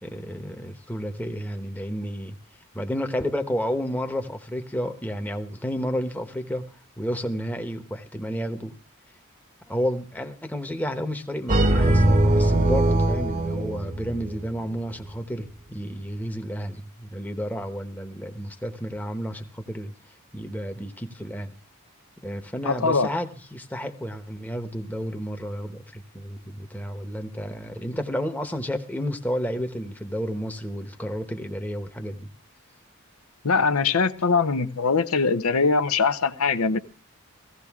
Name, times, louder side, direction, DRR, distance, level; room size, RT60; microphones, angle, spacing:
voice 1, 0.0-2.4 2.7-6.7 7.0-8.8 9.7-19.9 20.3-21.6 22.2-32.3, equal, 5° left, 5 dB, 1.0 m, -31 dB
sound 1, 11.5-14.4, right 1 dB, 35° right, 1.0 m, -21 dB
voice 2, 22.6-23.1 33.4-36.8, left 4 dB, 80° left, 10 dB, 0.8 m, -22 dB
16.0 x 16.0 x 3.6 m, 0.36 s
head